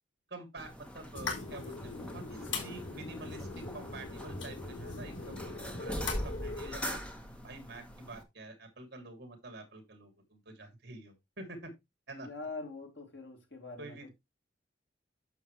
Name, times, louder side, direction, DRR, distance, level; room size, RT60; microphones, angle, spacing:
voice 1, 0.3-7.0 7.4-11.7 12.1-12.3 13.8-14.1, right 2 dB, 55° right, 3.1 m, -48 dB
sound 1, 0.6-8.2, equal, 5° left, 1.2 m, -43 dB
sound 2, 1.1-6.8, left 3 dB, 90° left, 3.8 m, -40 dB
voice 2, 12.2-14.1, left 3 dB, 65° left, 3.3 m, -43 dB
9.3 x 7.1 x 3.3 m
head